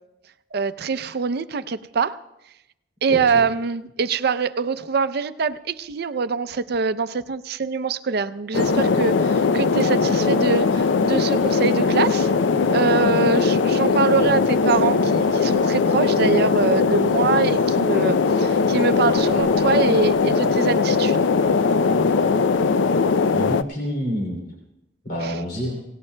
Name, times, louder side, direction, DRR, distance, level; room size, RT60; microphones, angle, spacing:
voice 1, 0.5-2.2 3.0-12.3 12.7-21.2 25.2-25.3, right 5 dB, 60° right, 13 dB, 0.5 m, -24 dB
voice 2, 3.1-3.4 23.3-24.5 25.0-25.8, equal, 55° left, 0 dB, 3.0 m, -28 dB
sound 1, 8.5-23.6, left 4 dB, 85° left, 0.5 m, -20 dB
25.0 x 17.5 x 2.2 m, 0.91 s
head